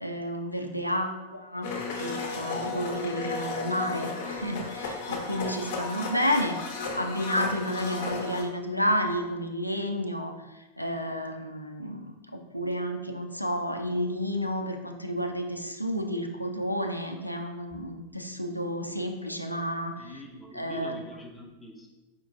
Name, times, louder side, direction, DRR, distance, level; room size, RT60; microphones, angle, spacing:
voice 1, 0.0-1.7 2.0-6.6 6.9-20.1 20.5-20.9, equal, 90° left, 4 dB, 0.4 m, -31 dB
Domestic sounds home sounds, 1.6-8.4, left 4 dB, 50° left, 0.8 m, -34 dB
voice 2, 20.0-21.9, equal, 5° left, -1 dB, 0.8 m, -43 dB
4.5 x 4.2 x 2.5 m, 1.1 s
figure-of-eight pair, 90°, 0 cm